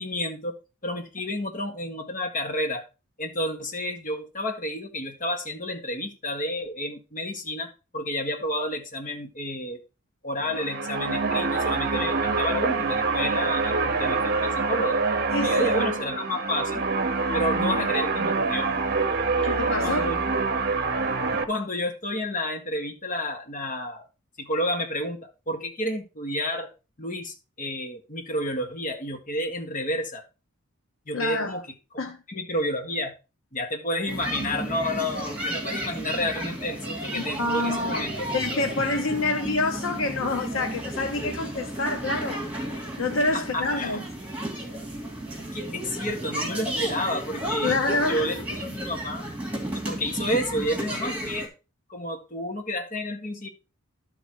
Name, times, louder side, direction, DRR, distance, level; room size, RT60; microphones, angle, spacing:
voice 1, 0.0-2.8 3.2-9.8 10.2-15.0 15.4-16.8 17.3-18.8 19.8-20.3 21.3-24.1 24.4-26.7 27.0-30.2 31.1-31.6 32.3-33.1 33.5-38.3 43.3-44.0 45.5-47.8 48.1-49.3 49.7-51.5 51.9-53.5, left 1 dB, 40° left, 1.5 m, -30 dB
sound 1, 10.3-21.4, right 4 dB, 45° right, 0.9 m, -25 dB
voice 2, 15.3-15.7 19.4-20.1 31.1-31.6 32.0-32.2 37.2-38.1 38.3-42.4 43.0-44.0 47.6-48.3, left 2 dB, 65° left, 0.8 m, -27 dB
sound 2, 34.1-51.5, right 1 dB, 5° right, 2.8 m, -33 dB
12.0 x 4.1 x 4.7 m
head